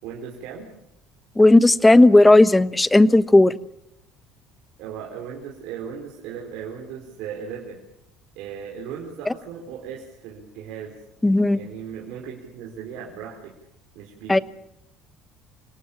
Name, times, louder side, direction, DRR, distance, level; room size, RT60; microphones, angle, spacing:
voice 1, 0.0-0.7 4.8-7.8 8.3-11.0 11.5-13.5 13.9-14.4, right 7 dB, 70° right, -1 dB, 4.7 m, -37 dB
voice 2, 1.4-3.5 11.2-11.6 14.3-14.4, left 2 dB, 10° left, 15 dB, 1.1 m, -14 dB
28.5 x 18.5 x 7.4 m, 0.82 s
supercardioid pair, 80°, 0 cm